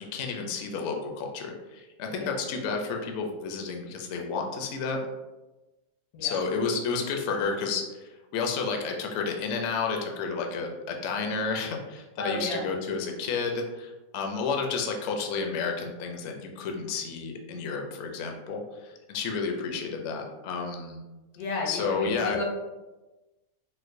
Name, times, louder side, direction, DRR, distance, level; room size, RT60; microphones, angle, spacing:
voice 1, 0.0-5.0 6.2-21.0 21.7-22.4, left 5 dB, 65° left, 2 dB, 0.7 m, -31 dB
voice 2, 12.2-12.7 21.4-22.4, left 2 dB, 90° left, -2 dB, 1.3 m, -33 dB
4.3 x 2.1 x 2.5 m, 1.1 s
omnidirectional pair, 1.5 m